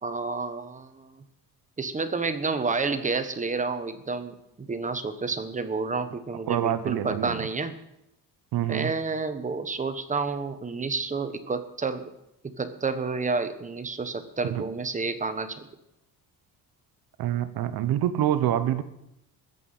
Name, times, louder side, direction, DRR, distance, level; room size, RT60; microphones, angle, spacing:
voice 1, 0.0-1.1 1.8-7.7 8.7-12.1 12.4-15.6, right 4 dB, 20° right, 10 dB, 1.1 m, -30 dB
voice 2, 6.5-7.3 8.5-8.9 14.5-14.7 17.2-18.8, right 11 dB, 70° right, 12 dB, 1.1 m, -26 dB
20.5 x 8.3 x 5.6 m, 0.86 s
cardioid pair, 135°, 38 cm